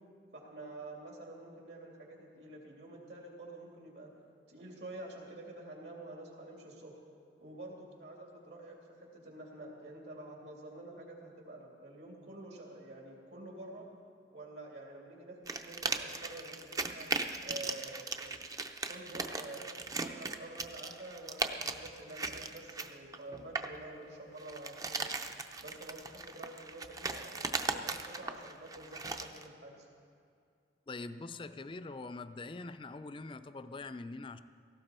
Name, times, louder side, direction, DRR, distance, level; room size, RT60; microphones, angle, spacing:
voice 1, 0.3-4.1 4.5-6.9 7.4-13.8 14.3-17.1 17.4-18.4 18.9-25.1 25.6-29.9, right 2 dB, 70° right, -1 dB, 2.9 m, -48 dB
sound 1, 15.5-23.8 24.4-29.4, right 3 dB, 20° right, 0.5 m, -38 dB
voice 2, 30.9-34.4, left 3 dB, 30° left, 11 dB, 0.4 m, -43 dB
17.5 x 15.5 x 4.4 m, 2.4 s
head